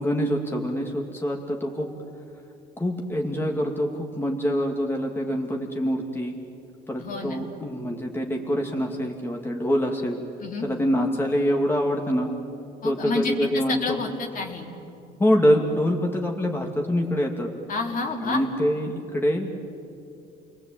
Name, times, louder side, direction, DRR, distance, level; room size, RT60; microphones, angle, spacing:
voice 1, 0.0-1.9 2.8-6.4 6.9-10.2 10.6-12.3 12.8-14.0 15.2-17.5 18.1-19.5, equal, 15° left, 1 dB, 2.5 m, -25 dB
voice 2, 7.0-7.4 10.4-10.7 12.8-14.7 17.7-18.4, left 4 dB, 55° left, 1 dB, 3.7 m, -29 dB
30.0 x 21.5 x 8.9 m, 2.6 s
cardioid pair, 110°, 17 cm